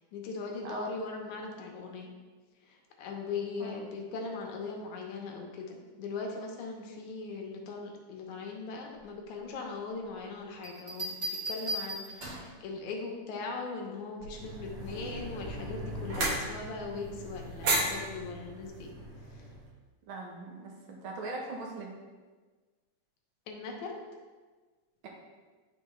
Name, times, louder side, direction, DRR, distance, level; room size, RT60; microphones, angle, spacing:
voice 1, 0.1-2.1 2.6-11.2 11.5-18.9 19.3-19.4 23.5-24.0, left 4 dB, 75° left, 1 dB, 2.2 m, -39 dB
Bell, 10.6-12.6 14.2-14.5, right 1 dB, 35° right, 2.2 m, -37 dB
sound 1, 14.3-19.7, right 2 dB, 60° right, 2.3 m, -35 dB
voice 2, 20.1-21.9, right 2 dB, 85° right, -1 dB, 1.1 m, -40 dB
11.0 x 4.1 x 3.1 m, 1.4 s
omnidirectional pair, 3.6 m